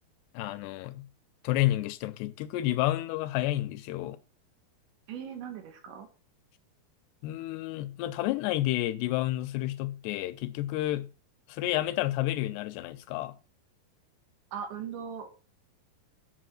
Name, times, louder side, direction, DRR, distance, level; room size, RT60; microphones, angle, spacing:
voice 1, 0.3-1.1 1.4-4.2 7.2-11.1 11.5-13.4, left 15 dB, 80° left, 2.5 m, -30 dB
voice 2, 5.1-6.1 14.5-15.3, right 7 dB, 85° right, 4.3 m, -39 dB
10.0 x 5.7 x 6.3 m
omnidirectional pair, 5.0 m